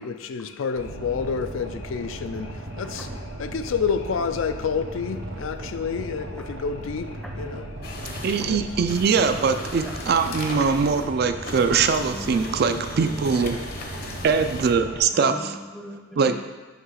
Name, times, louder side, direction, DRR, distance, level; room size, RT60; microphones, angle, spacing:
voice 1, 0.0-3.1 3.4-7.9 8.4-8.6, left 6 dB, 85° left, 0.4 m, -29 dB
Boat Water vehicle, 0.7-15.0, right 1 dB, 70° right, 0.9 m, -37 dB
sound 1, 7.8-14.7, left 2 dB, 50° left, 0.7 m, -38 dB
voice 2, 8.2-13.6 14.2-15.6 16.2-16.4, right 5 dB, 50° right, 0.3 m, -22 dB
voice 3, 11.7-14.1 15.1-16.4, equal, ahead, 0.5 m, -38 dB
5.9 x 3.1 x 5.6 m
head